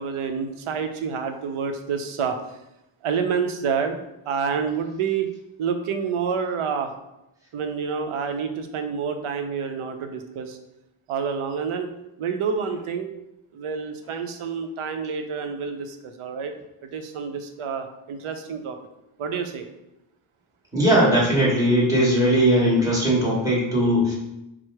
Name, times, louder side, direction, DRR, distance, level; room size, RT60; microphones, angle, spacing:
voice 1, 0.0-2.6 3.0-4.0 4.3-5.3 5.6-6.9 7.5-10.6 11.1-11.9 12.2-13.1 13.5-16.5 16.8-18.8 19.2-19.7, right 6 dB, 85° right, 6 dB, 0.6 m, -28 dB
voice 2, 20.7-24.1, equal, 5° right, -7 dB, 1.3 m, -19 dB
4.6 x 2.0 x 4.6 m, 0.88 s
wide cardioid pair, 170°, 49 cm